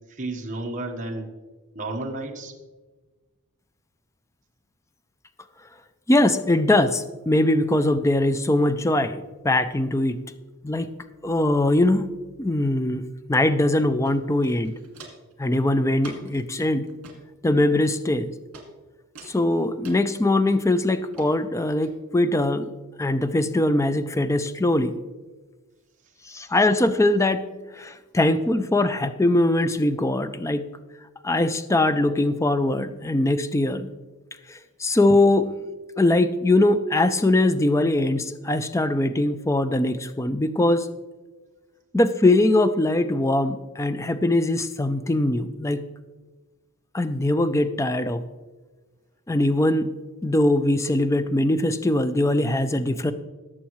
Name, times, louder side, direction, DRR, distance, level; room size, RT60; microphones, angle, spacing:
voice 1, 0.1-1.3 1.7-2.5, right 2 dB, 35° right, 0 dB, 1.2 m, -32 dB
voice 2, 6.1-10.2 10.6-10.9 11.2-12.0 12.4-14.7 15.4-16.9 17.4-18.3 19.3-22.7 23.0-25.0 26.3-27.4 27.7-30.7 31.2-33.9 34.5-35.5 36.0-40.9 41.9-45.9 46.9-48.2 49.3-49.9 50.2-53.1, left 1 dB, 15° left, 11 dB, 0.4 m, -21 dB
Walk footsteps, 14.0-14.1 14.4-15.3 16.0-16.4 16.9-17.2 17.8-18.2 18.5-18.7 19.2-20.0 20.5-20.8 21.1-21.3 21.8-21.9, right 3 dB, 65° right, 2.2 m, -43 dB
18.5 x 7.5 x 3.1 m, 1.3 s
head